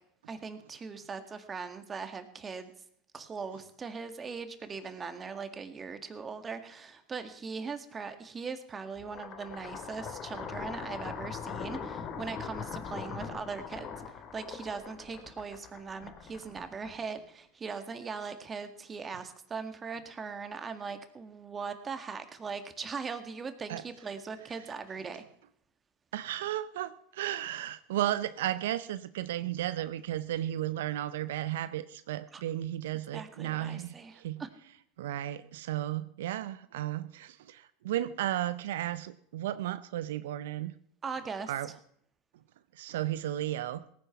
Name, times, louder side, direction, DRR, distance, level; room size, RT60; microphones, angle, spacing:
voice 1, 0.3-2.7 3.1-25.2 32.3-32.4 33.1-34.5 41.0-41.5, right 5 dB, 25° right, 9 dB, 1.8 m, -40 dB
sound 1, 9.0-17.2, left 6 dB, 45° left, 2.6 m, -41 dB
voice 2, 26.1-34.4 35.0-40.7 41.5-41.7 42.7-43.8, right 13 dB, 75° right, 14 dB, 0.5 m, -34 dB
18.0 x 9.5 x 5.9 m, 0.67 s
hypercardioid pair, 95°, 0 cm